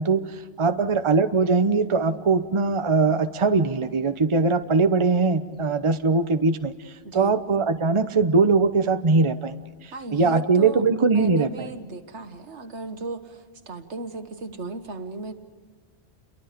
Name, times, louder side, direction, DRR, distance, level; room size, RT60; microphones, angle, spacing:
voice 1, 0.0-11.7, right 4 dB, 30° right, 9 dB, 0.9 m, -21 dB
voice 2, 7.0-7.4 9.9-15.3, right 3 dB, 80° right, 8 dB, 1.8 m, -36 dB
29.0 x 23.0 x 5.1 m, 1.5 s
omnidirectional pair, 1.2 m